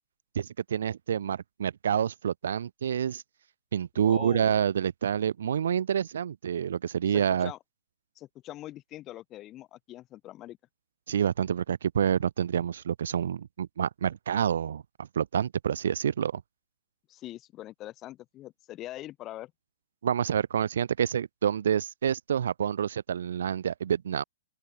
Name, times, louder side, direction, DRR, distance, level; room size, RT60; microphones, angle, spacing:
voice 1, 0.4-3.2 3.7-7.5 11.1-16.4 20.0-24.2, right 8 dB, 70° right, 0.4 m, -28 dB
voice 2, 4.0-4.6 7.1-7.6 8.2-10.6 17.1-19.5, left 14 dB, 25° left, 2.8 m, -43 dB
open air
hypercardioid pair, 130°, 0 cm